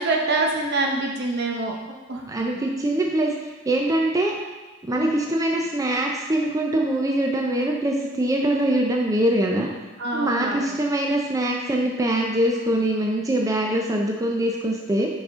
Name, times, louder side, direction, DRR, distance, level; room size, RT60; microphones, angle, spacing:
voice 1, 0.0-1.7 2.1-2.2 4.9-5.1 10.0-10.7, right 2 dB, 55° right, 1 dB, 0.9 m, -25 dB
voice 2, 2.3-3.3 3.7-4.4 4.8-9.7 10.1-15.1, right 1 dB, 15° right, 0 dB, 0.5 m, -23 dB
6.2 x 4.9 x 3.6 m, 1.2 s
head